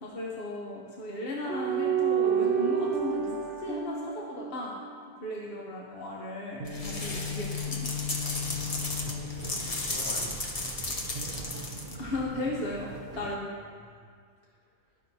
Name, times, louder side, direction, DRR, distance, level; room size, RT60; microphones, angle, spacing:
voice 1, 0.0-4.8 5.2-8.0 10.8-10.9 12.0-13.5, left 2 dB, 55° left, -3 dB, 1.1 m, -36 dB
sound 1, 1.5-5.2 6.6-10.4 11.2-12.4, right 4 dB, 85° right, 1.0 m, -32 dB
sound 2, 6.7-12.2, left 2 dB, 35° left, 0.8 m, -35 dB
sound 3, 8.3-13.4, right 4 dB, 50° right, 0.7 m, -44 dB
voice 2, 8.7-10.7 13.7-14.0, left 1 dB, 80° left, -8 dB, 2.7 m, -48 dB
13.5 x 5.5 x 2.7 m, 2.1 s
omnidirectional pair, 1.2 m